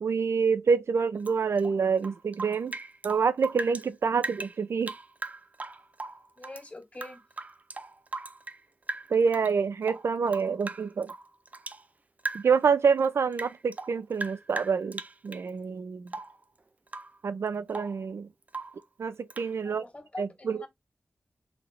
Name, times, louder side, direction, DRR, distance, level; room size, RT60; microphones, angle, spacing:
voice 1, 0.0-2.8 3.0-4.9 9.1-11.1 12.3-16.1 17.2-18.3 19.0-19.8 20.2-20.7, right 5 dB, 85° right, 0.5 m, -27 dB
Rain / Drip, 1.2-3.9 4.2-6.6 6.9-8.6 8.9-9.5 9.8-11.8 12.2-12.7 13.0-15.5 16.1-16.4 16.9-17.2 17.5-18.0 18.5-18.8 19.3-19.5, right 3 dB, 35° right, 0.5 m, -39 dB
voice 2, 6.4-7.2 19.6-20.7, left 2 dB, 30° left, 2.3 m, -44 dB
3.9 x 3.3 x 3.0 m
wide cardioid pair, 80°, 4 cm